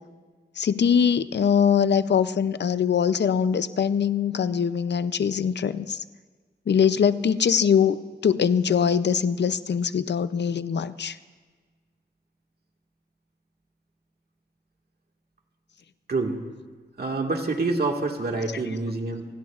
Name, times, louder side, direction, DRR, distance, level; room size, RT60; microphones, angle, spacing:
voice 1, 0.6-6.0 6.7-11.2, left 7 dB, 70° left, 14 dB, 0.5 m, -22 dB
voice 2, 16.1-16.4 17.0-19.4, right 3 dB, 60° right, 2 dB, 1.8 m, -27 dB
28.5 x 17.0 x 2.4 m, 1.5 s
wide cardioid pair, 80°, 18 cm